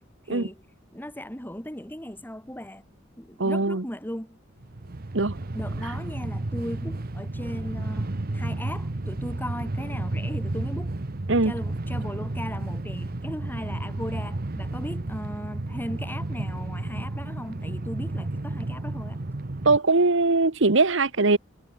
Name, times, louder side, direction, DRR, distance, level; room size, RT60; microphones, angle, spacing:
voice 1, 0.3-0.6 0.9-2.8 3.2-4.4 5.5-10.9 11.4-19.2, equal, 10° left, 6.9 m, -37 dB
voice 2, 3.4-3.8 5.1-5.4 11.3-11.5 19.6-21.4, right 3 dB, 65° right, 1.4 m, -21 dB
Train, 4.6-19.8, right 2 dB, 50° right, 1.0 m, -32 dB
head